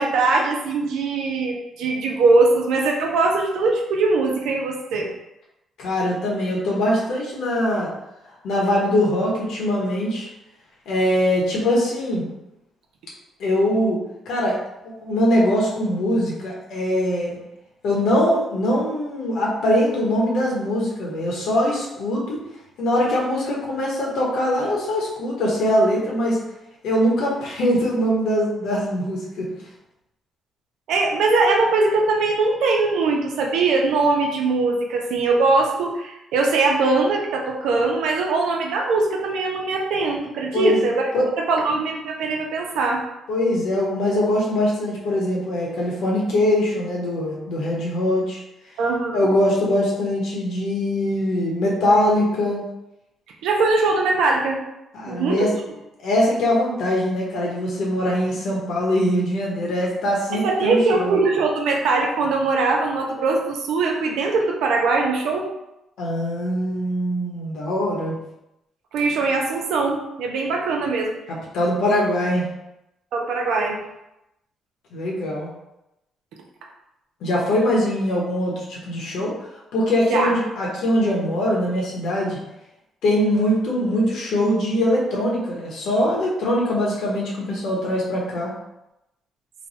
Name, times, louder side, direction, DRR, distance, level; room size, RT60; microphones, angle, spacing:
voice 1, 0.0-5.1 30.9-41.0 41.5-43.0 48.8-49.3 53.4-54.6 55.1-55.5 60.3-65.5 68.9-71.2 73.1-73.8 80.1-80.3, right 3 dB, 85° right, 0 dB, 0.7 m, -21 dB
voice 2, 5.8-7.9 8.4-10.3 10.9-12.3 13.4-14.6 15.0-17.4 17.8-22.4 22.8-26.4 26.8-29.5 40.5-40.9 41.1-41.2 43.3-48.4 49.1-52.6 54.9-55.5 56.0-61.1 66.0-68.2 71.3-72.5 74.9-75.5 77.2-79.3 79.7-82.4 83.0-88.5, left 1 dB, 80° left, -3 dB, 1.1 m, -22 dB
3.2 x 2.3 x 4.1 m, 0.90 s
cardioid pair, 90°, 0 cm